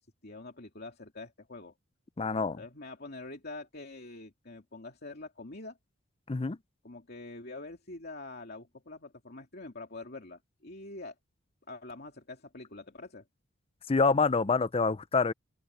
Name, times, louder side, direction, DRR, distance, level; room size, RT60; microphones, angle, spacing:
voice 1, 0.2-1.7 2.4-5.8 6.8-11.1 11.7-13.2, left 2 dB, 50° left, 2.7 m, -45 dB
voice 2, 2.2-2.6 6.3-6.6 13.9-15.3, left 4 dB, 30° left, 0.5 m, -26 dB
open air
head